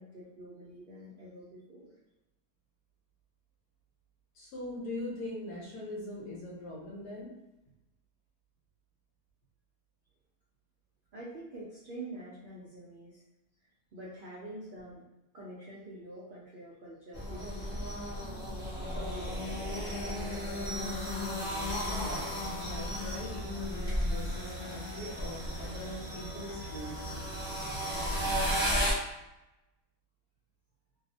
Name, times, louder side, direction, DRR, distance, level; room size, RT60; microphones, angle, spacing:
voice 1, 0.0-1.9 11.1-13.2 13.9-15.0 15.3-17.9 18.8-19.9, right 1 dB, 75° right, -6 dB, 0.5 m, -46 dB
voice 2, 4.3-7.3 22.0-22.3 22.6-27.2, left 1 dB, 75° left, -5 dB, 1.2 m, -41 dB
sound 1, 17.1-28.9, equal, 5° right, 0.4 m, -34 dB
2.8 x 2.0 x 2.7 m, 0.93 s
omnidirectional pair, 1.7 m